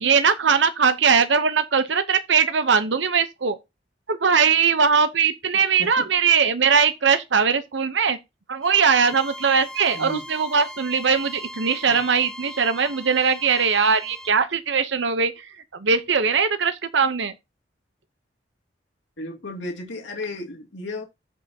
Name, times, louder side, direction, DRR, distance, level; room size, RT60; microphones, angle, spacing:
voice 1, 0.0-3.6 4.1-8.2 8.5-15.5 15.8-17.3, right 6 dB, 75° right, 0.8 m, -20 dB
Bowed string instrument, 8.6-14.4, equal, 5° left, 1.2 m, -39 dB
voice 2, 19.2-21.0, left 2 dB, 90° left, 2.4 m, -33 dB
14.5 x 5.5 x 2.8 m
head